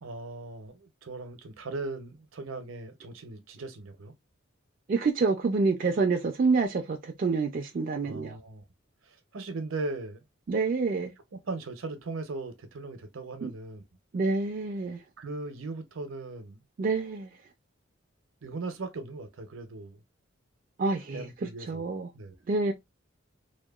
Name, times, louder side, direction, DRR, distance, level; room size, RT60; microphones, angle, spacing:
voice 1, 0.0-4.1 8.0-8.6 9.0-10.2 11.3-13.8 15.2-16.6 18.4-20.0 21.1-21.8 22.1-22.4, right 3 dB, 75° right, 0.6 m, -38 dB
voice 2, 4.9-8.4 10.5-11.1 13.4-13.5 14.1-15.0 16.8-17.3 20.8-22.1 22.5-22.7, right 4 dB, 40° right, 0.3 m, -27 dB
2.8 x 2.1 x 2.2 m
head